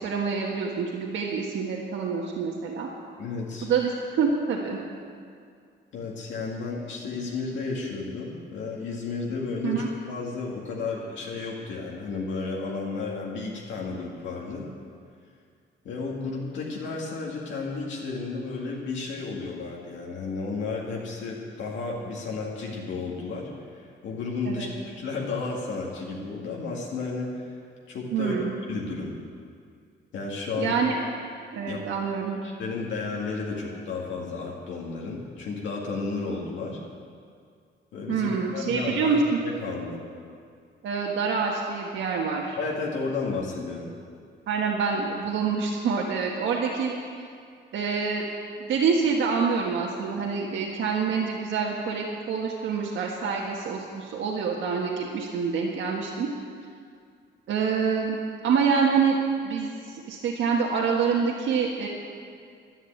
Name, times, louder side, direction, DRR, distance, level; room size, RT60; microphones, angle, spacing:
voice 1, 0.0-2.9 3.6-4.8 9.6-9.9 24.4-24.7 28.1-28.6 30.6-31.0 31.5-32.4 38.1-39.2 40.8-42.6 44.5-47.0 47.7-48.3 48.7-56.3 57.5-58.2 58.4-59.2 59.4-61.9, right 5 dB, 90° right, -2 dB, 1.6 m, -26 dB
voice 2, 3.2-3.7 5.9-14.7 15.8-27.6 27.9-29.2 30.1-30.8 31.7-31.8 32.4-36.8 37.9-40.0 42.6-43.9, left 4 dB, 75° left, -3 dB, 2.1 m, -33 dB
11.5 x 11.0 x 8.6 m, 2.2 s
cardioid pair, 175°, 19 cm